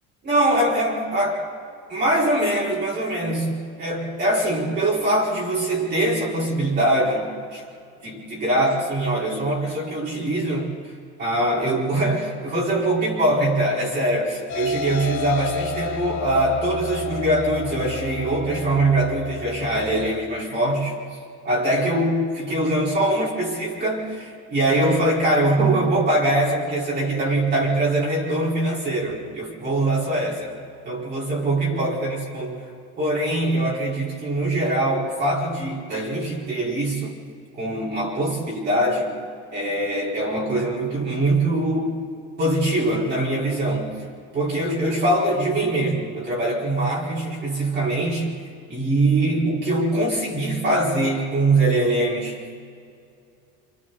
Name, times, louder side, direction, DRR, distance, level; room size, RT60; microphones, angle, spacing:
voice 1, 0.2-1.4 1.9-7.6 8.0-10.7 11.2-21.0 21.4-30.5 30.8-32.6 33.0-37.1 37.6-39.1 39.5-42.0 42.4-44.0 44.3-48.3 48.7-52.4, right 1 dB, 35° right, -6 dB, 5.0 m, -23 dB
sound 1, 14.5-20.1, left 4 dB, 60° left, 3.0 m, -31 dB
28.5 x 28.0 x 4.1 m, 2.4 s
cardioid pair, 165°, 30 cm